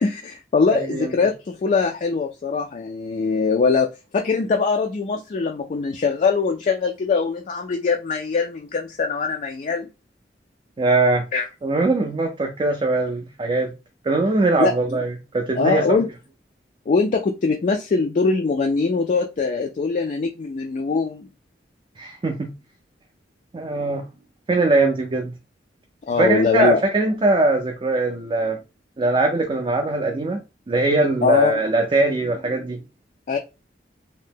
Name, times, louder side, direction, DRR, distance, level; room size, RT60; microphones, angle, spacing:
voice 1, 0.0-3.9 4.1-9.9 11.3-11.5 14.6-14.7 15.6-16.1 16.9-21.3 26.1-26.8 31.2-31.6 33.3-33.4, left 4 dB, 45° left, 0.3 m, -22 dB
voice 2, 0.7-1.1 10.8-11.3 11.6-13.7 14.0-16.0 22.0-22.5 23.5-24.0 24.5-25.3 26.2-28.6 29.0-30.4 30.7-32.8, right 2 dB, 30° right, 0.4 m, -21 dB
2.7 x 2.1 x 3.4 m
head